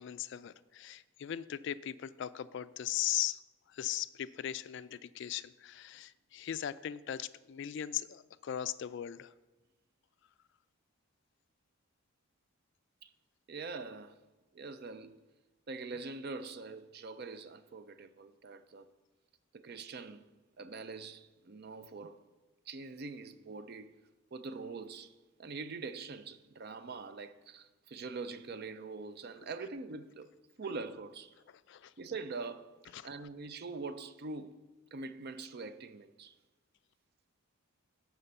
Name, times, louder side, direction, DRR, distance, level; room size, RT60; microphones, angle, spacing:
voice 1, 0.0-3.4 3.7-9.3 31.7-31.9 32.9-33.1, left 11 dB, 55° left, 0.3 m, -38 dB
voice 2, 13.5-14.2 14.5-15.2 15.7-18.9 19.5-20.3 20.6-22.2 22.7-23.9 24.3-25.1 25.4-30.3 30.6-31.3 32.0-32.8 33.0-34.6 34.9-36.4, right 4 dB, 45° right, 0.4 m, -43 dB
11.0 x 4.4 x 6.8 m
head